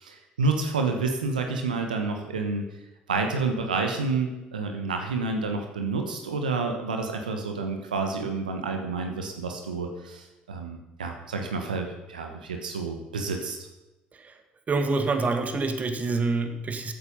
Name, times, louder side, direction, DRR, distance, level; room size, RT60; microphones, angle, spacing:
voice 1, 0.0-2.7 3.1-13.7, right 3 dB, 90° right, 4 dB, 1.2 m, -29 dB
voice 2, 14.7-16.9, right 3 dB, 35° right, 6 dB, 2.0 m, -26 dB
14.5 x 8.9 x 5.5 m, 1.0 s
hypercardioid pair, 60°, 4 cm